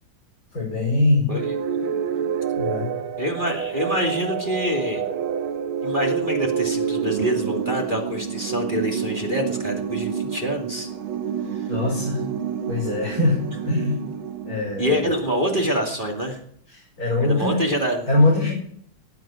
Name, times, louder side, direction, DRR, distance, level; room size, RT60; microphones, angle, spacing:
voice 1, 0.5-1.3 2.6-2.9 11.7-12.2 12.7-13.4 13.7-14.0 14.4-15.0 16.7-17.6 18.1-18.5, left 2 dB, 45° left, -4 dB, 5.9 m, -22 dB
voice 2, 1.3-1.7 3.2-5.0 5.8-10.9 11.5-11.7 14.8-16.4 17.2-18.1, equal, 25° right, 1 dB, 2.5 m, -26 dB
sound 1, 1.4-15.1, right 7 dB, 80° right, 1.9 m, -28 dB
18.5 x 7.9 x 8.9 m, 0.63 s
omnidirectional pair, 2.2 m